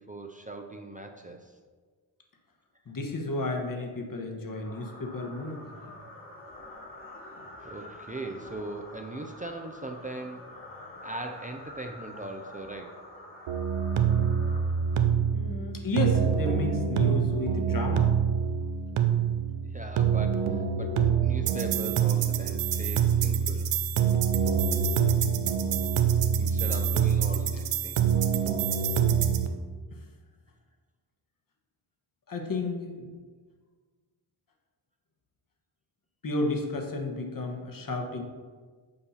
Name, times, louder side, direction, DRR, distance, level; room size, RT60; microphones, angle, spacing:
voice 1, 0.0-1.5 7.6-10.5 11.0-13.0 18.5-18.7 19.6-23.7 26.4-28.1, right 2 dB, 15° right, 3 dB, 0.5 m, -40 dB
voice 2, 2.9-5.7 15.3-18.1 29.9-30.0 32.3-33.1 36.2-38.2, left 2 dB, 45° left, 3 dB, 1.2 m, -32 dB
sound 1, 4.6-15.3, left 1 dB, 25° left, 1.6 m, -47 dB
sound 2, 13.5-29.5, right 7 dB, 85° right, 0.6 m, -25 dB
6.8 x 2.7 x 5.5 m, 1.5 s
cardioid pair, 45°, 48 cm